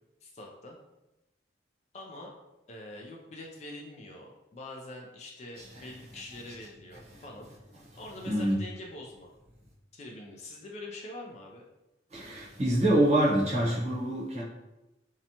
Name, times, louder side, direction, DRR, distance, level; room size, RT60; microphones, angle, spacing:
voice 1, 0.2-0.8 1.9-2.3 2.7-7.5 8.0-9.3 9.9-11.7, left 1 dB, 35° left, 0 dB, 0.3 m, -44 dB
voice 2, 5.6-5.9 8.2-8.6 12.1-14.4, right 1 dB, 35° right, -7 dB, 0.8 m, -26 dB
2.6 x 2.1 x 2.7 m, 0.97 s
head